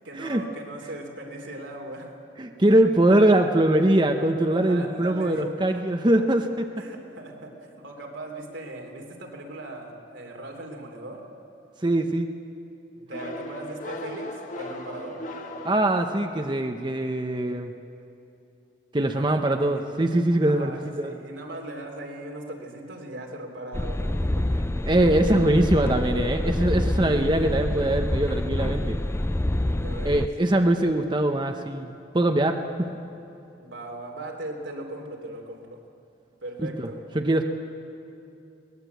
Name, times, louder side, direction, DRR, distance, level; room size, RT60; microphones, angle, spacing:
voice 1, 0.0-2.1 4.6-5.4 6.8-11.2 13.0-15.2 19.1-20.1 20.5-24.6 29.5-30.8 33.6-35.8 36.4-37.0, right 1 dB, 85° right, 1 dB, 3.2 m, -39 dB
voice 2, 2.4-6.7 11.8-12.3 15.6-17.7 18.9-21.1 24.9-29.0 30.0-32.9 37.1-37.4, right 1 dB, 25° right, 5 dB, 0.8 m, -22 dB
sound 1, 13.1-16.6, left 1 dB, 45° left, 1.7 m, -37 dB
sound 2, 23.7-30.3, left 1 dB, 15° left, 0.4 m, -26 dB
22.0 x 19.5 x 8.2 m, 2.8 s
head